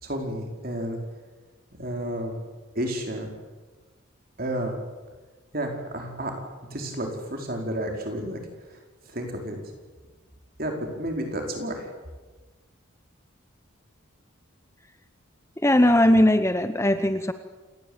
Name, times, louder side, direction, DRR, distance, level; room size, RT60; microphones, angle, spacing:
voice 1, 0.0-1.0 1.7-2.4 2.7-3.3 4.4-4.7 5.5-6.4 6.7-8.4 9.1-9.6 10.6-11.9, right 1 dB, 45° right, 2 dB, 4.9 m, -31 dB
voice 2, 15.6-17.3, left 1 dB, 15° left, 10 dB, 0.8 m, -19 dB
28.0 x 18.0 x 8.9 m, 1.3 s
head